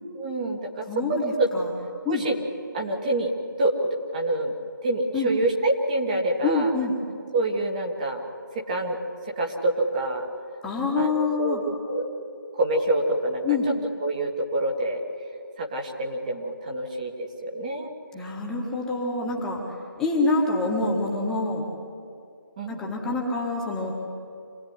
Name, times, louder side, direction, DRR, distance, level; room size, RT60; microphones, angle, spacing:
voice 1, 0.1-1.5 2.0-2.4 2.7-3.3 3.6-3.7 4.1-4.5 4.8-6.7 7.3-8.2 8.5-9.0 9.2-10.2 11.0-12.0 12.5-13.4 14.0-15.0 15.6-17.9 22.6-22.8, right 2 dB, 20° right, 1 dB, 1.8 m, -26 dB
voice 2, 0.9-1.7 2.0-2.3 5.1-5.3 6.4-7.0 10.6-11.6 13.4-13.7 18.1-19.6 20.0-21.7 22.7-24.1, left 3 dB, 5° left, -3 dB, 1.7 m, -26 dB
26.5 x 18.0 x 9.7 m, 2.5 s
figure-of-eight pair, 165°, 12 cm